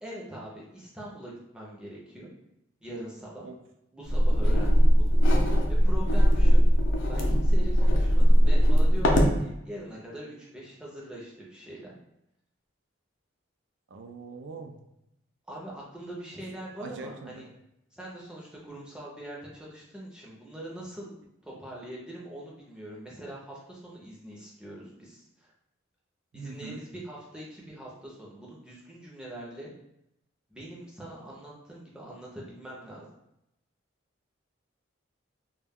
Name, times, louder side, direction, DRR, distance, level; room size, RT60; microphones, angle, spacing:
voice 1, 0.0-2.3 2.8-3.5 3.9-5.2 5.7-6.6 7.1-12.0 15.5-17.5 17.9-21.1 21.4-25.5 26.3-29.7 30.5-33.1, right 1 dB, 5° right, -5 dB, 0.5 m, -42 dB
sound 1, 4.1-9.4, equal, 75° left, 0.5 m, -20 dB
voice 2, 13.9-14.8 16.8-17.4 26.3-26.8, right 4 dB, 70° right, 4 dB, 0.4 m, -42 dB
2.2 x 2.2 x 3.4 m, 0.81 s
head